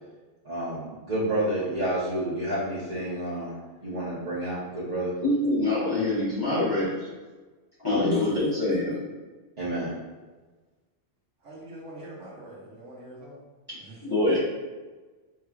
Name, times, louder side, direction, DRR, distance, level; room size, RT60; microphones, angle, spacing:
voice 1, 0.4-3.5 3.8-5.1 7.9-8.3 9.6-9.9, equal, 35° right, -12 dB, 1.1 m, -29 dB
voice 2, 5.2-7.1 7.8-8.9 13.7-13.8 14.0-14.4, left 2 dB, 20° left, -11 dB, 1.1 m, -25 dB
voice 3, 11.4-13.4 13.8-14.0 14.3-14.4, right 1 dB, 90° right, -5 dB, 1.3 m, -43 dB
5.7 x 3.1 x 2.4 m, 1.3 s
omnidirectional pair, 1.2 m